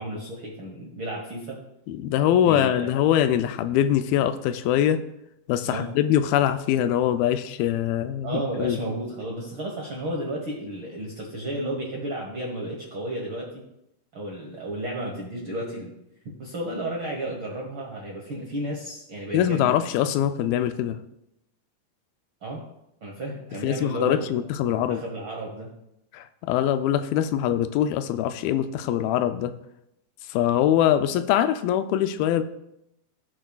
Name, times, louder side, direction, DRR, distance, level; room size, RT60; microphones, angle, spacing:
voice 1, 0.0-1.6 2.4-2.9 5.6-5.9 8.2-13.5 14.1-15.9 16.4-19.7 22.4-22.6 23.0-24.2 24.7-25.7, right 1 dB, 65° right, -2 dB, 1.3 m, -32 dB
voice 2, 1.9-5.0 5.5-8.8 19.3-21.0 23.6-25.0 26.1-29.6 30.3-32.4, left 11 dB, 85° left, 11 dB, 2.4 m, -23 dB
17.0 x 6.2 x 2.3 m, 0.82 s
omnidirectional pair, 4.2 m